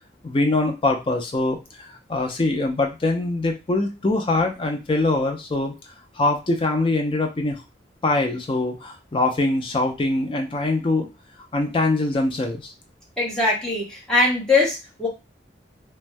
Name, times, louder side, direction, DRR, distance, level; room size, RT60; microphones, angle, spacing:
voice 1, 0.2-5.7 6.2-7.6 8.0-11.1 11.5-12.7, left 2 dB, 30° left, 2 dB, 0.4 m, -23 dB
voice 2, 13.2-15.1, left 3 dB, 5° left, -5 dB, 1.0 m, -21 dB
2.5 x 2.1 x 3.2 m, 0.27 s
head